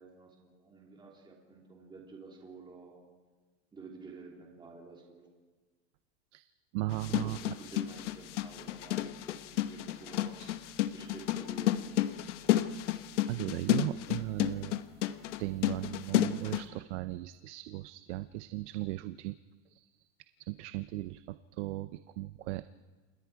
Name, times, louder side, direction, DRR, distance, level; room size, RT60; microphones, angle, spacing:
voice 1, 0.0-3.0 3.7-5.3 6.9-10.4 10.9-12.2, right 4 dB, 15° right, -1 dB, 3.1 m, -51 dB
voice 2, 6.3-7.4 10.4-10.6 12.9-14.8 15.4-19.4 19.7-20.1 20.4-22.6, right 17 dB, 70° right, 13 dB, 0.8 m, -37 dB
sound 1, 6.9-16.6, left 14 dB, 85° left, 1.2 m, -31 dB
27.5 x 21.0 x 4.8 m, 1.4 s
supercardioid pair, 145°, 35 cm